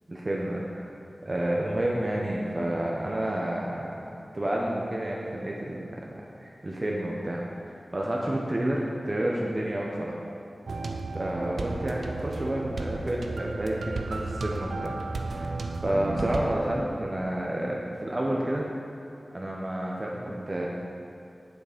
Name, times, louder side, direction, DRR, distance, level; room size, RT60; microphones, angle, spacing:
voice 1, 0.1-0.9 1.2-4.1 4.3-10.2 11.1-14.9 15.3-15.6 15.8-18.6 19.3-20.7, right 1 dB, 40° right, -3 dB, 1.0 m, -30 dB
sound 1, 10.7-16.5, right 3 dB, 90° right, 0.5 m, -34 dB
7.1 x 6.6 x 5.1 m, 2.6 s
wide cardioid pair, 50°, 0 cm